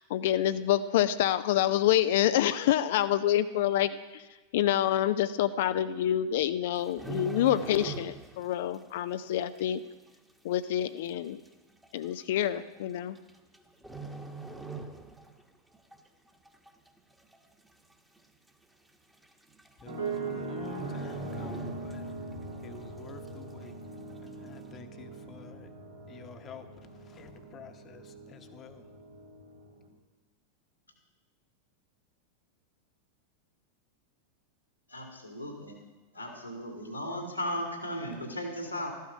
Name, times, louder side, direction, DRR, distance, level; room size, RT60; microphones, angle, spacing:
voice 1, 0.0-4.2 4.5-9.8 10.4-11.4 11.9-13.2, left 12 dB, 55° left, 12 dB, 0.5 m, -27 dB
sound 1, 6.7-8.5 8.7-9.0 9.6-9.7 10.6-10.7 10.9-11.0 11.8-12.1 13.2-13.6 13.8-15.4 15.7-16.0 16.5-17.0 17.3-17.4 17.7-17.8 18.2-18.3 19.2-19.3 19.6-19.9 20.2-20.3 20.7-22.3 22.7-22.8, right 3 dB, 5° right, 1.3 m, -41 dB
voice 2, 19.8-22.1 22.6-23.8 24.2-25.7 26.1-28.9, left 4 dB, 25° left, 8 dB, 1.1 m, -49 dB
sound 2, 19.9-29.9, right 3 dB, 75° right, 3.0 m, -41 dB
voice 3, 34.9-35.8 36.1-38.9, left 1 dB, 90° left, 2 dB, 2.3 m, -36 dB
13.5 x 12.0 x 5.3 m, 1.2 s
figure-of-eight pair, 90°, 0 cm